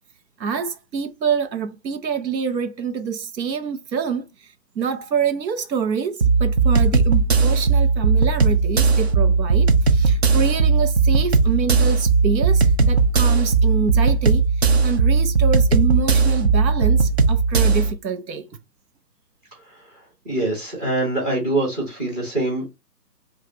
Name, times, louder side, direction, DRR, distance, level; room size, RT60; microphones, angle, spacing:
voice 1, 0.4-18.5, right 6 dB, 90° right, 0.9 m, -26 dB
sound 1, 6.2-17.9, right 4 dB, 40° right, 0.5 m, -17 dB
voice 2, 19.5-22.7, right 2 dB, 20° right, 1.5 m, -25 dB
4.8 x 2.4 x 2.8 m
hypercardioid pair, 160°, 50 cm